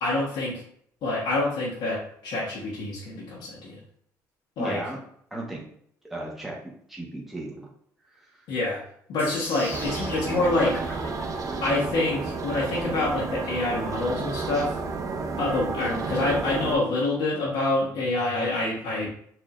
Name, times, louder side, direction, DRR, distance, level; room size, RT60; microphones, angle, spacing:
voice 1, 0.0-0.6 1.0-3.8 4.6-4.8 8.5-8.8 9.1-10.8 11.6-14.8 15.4-19.1, left 2 dB, 75° left, -6 dB, 1.1 m, -26 dB
voice 2, 4.6-5.0 5.3-5.7 6.1-6.6 6.9-7.7 8.1-8.4, right 2 dB, ahead, -4 dB, 1.2 m, -35 dB
sound 1, 9.2-15.2, left 1 dB, 30° left, 1.2 m, -40 dB
sound 2, 9.7-16.8, right 4 dB, 50° right, 0.5 m, -31 dB
4.4 x 2.7 x 2.5 m, 0.66 s
supercardioid pair, 80°, 8 cm